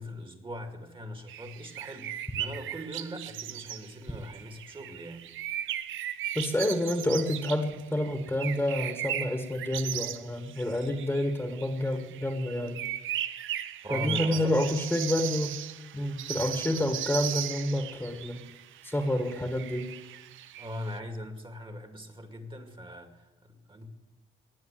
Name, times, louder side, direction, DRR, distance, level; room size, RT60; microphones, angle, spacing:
voice 1, 0.0-5.3 13.8-14.5 16.7-16.9 20.6-23.9, equal, 25° right, 6 dB, 2.3 m, -40 dB
sound 1, 1.3-21.0, right 12 dB, 80° right, 0.7 m, -37 dB
voice 2, 6.4-12.8 13.9-15.6 15.9-18.4 18.8-19.9, left 1 dB, 10° left, 5 dB, 1.8 m, -29 dB
19.0 x 7.8 x 7.6 m, 1.1 s
cardioid pair, 90°, 20 cm